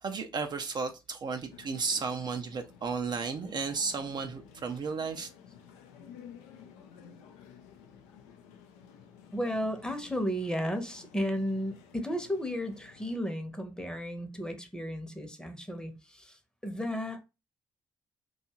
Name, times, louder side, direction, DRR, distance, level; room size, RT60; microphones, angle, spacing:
voice 1, 0.0-5.3, right 5 dB, 45° right, 0.4 m, -33 dB
sound 1, 1.5-13.2, left 8 dB, 85° left, 0.4 m, -53 dB
voice 2, 9.3-17.2, equal, 10° left, 0.8 m, -34 dB
2.7 x 2.3 x 2.8 m
hypercardioid pair, 45°, 10 cm